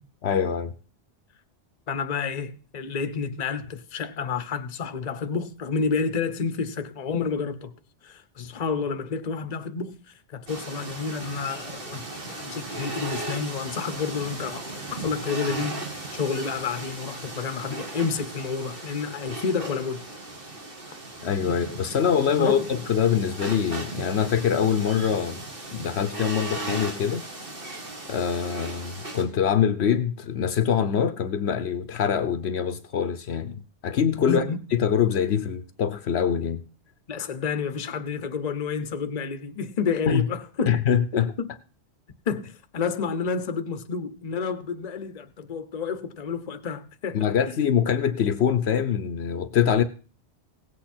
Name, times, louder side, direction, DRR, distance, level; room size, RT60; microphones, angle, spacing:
voice 1, 0.2-0.7 21.2-25.4 25.7-27.3 28.1-34.4 34.7-36.6 40.1-40.2 40.7-41.3 47.1-49.8, left 8 dB, 65° left, 1.0 m, -24 dB
voice 2, 1.9-7.7 8.0-20.1 21.5-21.6 22.3-22.7 34.2-34.6 37.1-40.7 41.1-41.5 42.3-47.3, left 5 dB, 40° left, 0.8 m, -30 dB
sound 1, 10.5-29.2, right 2 dB, 50° right, 2.1 m, -37 dB
17.0 x 8.2 x 4.3 m
omnidirectional pair, 1.2 m